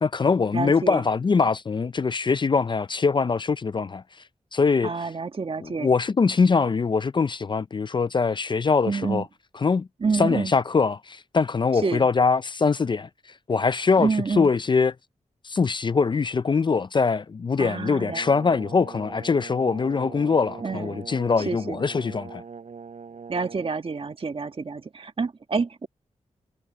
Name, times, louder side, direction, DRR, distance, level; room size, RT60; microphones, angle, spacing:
voice 1, 0.0-4.0 4.5-4.9 5.6-9.2 9.6-9.9 10.1-13.1 13.5-14.1 14.4-14.9 15.4-22.4, left 4 dB, 40° left, 0.5 m, -23 dB
voice 2, 0.5-1.0 4.8-5.9 8.8-9.3 10.0-10.5 11.8-12.1 14.0-14.5 17.6-18.2 20.6-21.0 21.4-21.8 23.3-25.9, right 4 dB, 45° right, 1.6 m, -28 dB
Brass instrument, 17.9-23.7, right 5 dB, 65° right, 5.7 m, -41 dB
cardioid pair, 75°, 13 cm